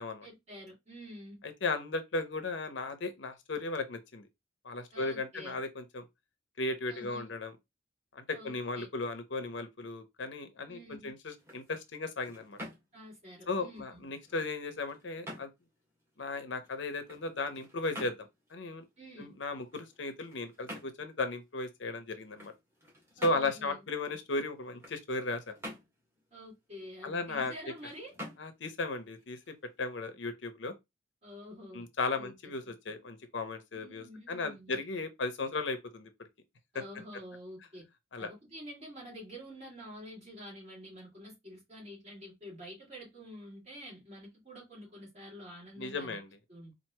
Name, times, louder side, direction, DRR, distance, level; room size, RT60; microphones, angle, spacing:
voice 1, 0.2-1.4 4.9-5.6 6.9-7.3 8.3-8.9 10.7-11.1 12.9-14.1 19.0-19.4 23.2-23.9 26.3-28.1 31.2-31.8 32.2-32.3 32.6-32.7 33.7-34.8 36.7-37.8 38.2-46.2 46.5-46.7, equal, 35° right, 2.9 m, -48 dB
voice 2, 1.4-4.3 4.6-6.0 6.6-7.5 8.1-12.6 13.5-15.5 16.2-18.8 19.2-22.5 23.2-25.6 27.0-27.5 28.4-30.7 31.7-36.1 36.7-36.8 38.1-38.3 45.8-46.3, left 3 dB, 75° left, 0.7 m, -36 dB
sound 1, 11.3-30.1, equal, 15° right, 1.5 m, -50 dB
4.5 x 2.5 x 2.9 m
head